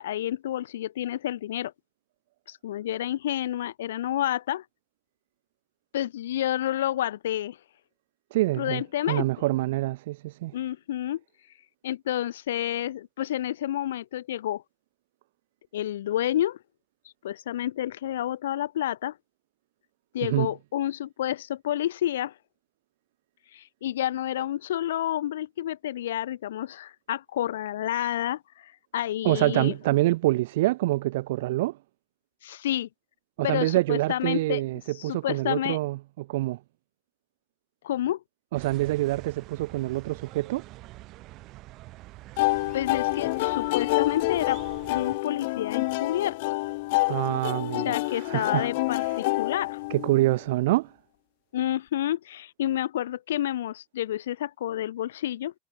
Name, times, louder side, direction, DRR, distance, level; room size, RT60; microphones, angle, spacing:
voice 1, 0.0-1.7 2.5-4.6 5.9-7.6 8.6-9.3 10.5-11.2 11.8-14.6 15.7-16.6 17.2-19.2 20.1-22.3 23.5-29.7 32.4-32.9 33.4-34.6 35.0-35.8 37.8-38.2 42.7-44.6 44.9-46.4 47.8-49.8 51.5-55.5, left 12 dB, 85° left, 1.8 m, -29 dB
voice 2, 8.3-10.5 20.2-20.5 29.2-31.8 33.4-36.6 38.5-40.6 47.1-48.7 49.9-50.9, right 17 dB, 75° right, 2.7 m, -26 dB
sound 1, 38.5-45.2, right 18 dB, 50° right, 5.8 m, -46 dB
sound 2, 42.4-50.3, left 23 dB, 70° left, 4.9 m, -28 dB
supercardioid pair, 120°, 0 cm